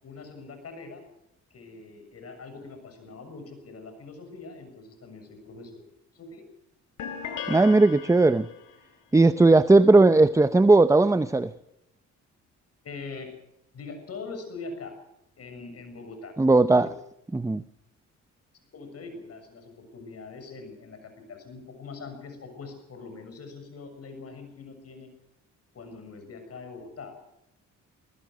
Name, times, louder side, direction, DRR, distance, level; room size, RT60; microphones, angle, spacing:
voice 1, 0.0-1.0 1.5-5.8 6.1-6.5 12.8-13.3 13.7-15.0 15.4-16.3 16.7-16.9 18.7-25.1 25.7-27.2, left 4 dB, 55° left, 6.9 m, -42 dB
sound 1, 7.0-8.8, left 7 dB, 80° left, 3.8 m, -37 dB
voice 2, 7.5-8.5 9.1-11.5 16.4-16.9 17.3-17.6, right 2 dB, 10° right, 0.7 m, -18 dB
22.0 x 20.0 x 6.3 m
cardioid pair, 90°, 30 cm